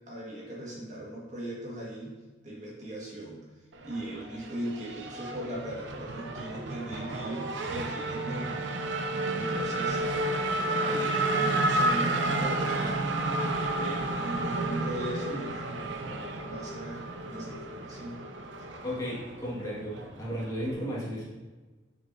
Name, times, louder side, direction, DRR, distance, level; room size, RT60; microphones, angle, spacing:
voice 1, 0.1-2.2 2.4-8.5 9.3-10.0 10.7-13.2 13.5-18.2, right 1 dB, 40° right, -5 dB, 1.7 m, -39 dB
Race car auto racing / Accelerating revving vroom, 3.7-20.7, right 2 dB, 75° right, 0.7 m, -31 dB
voice 2, 18.8-21.2, equal, 20° left, -7 dB, 1.7 m, -34 dB
7.9 x 6.2 x 2.7 m, 1.3 s
head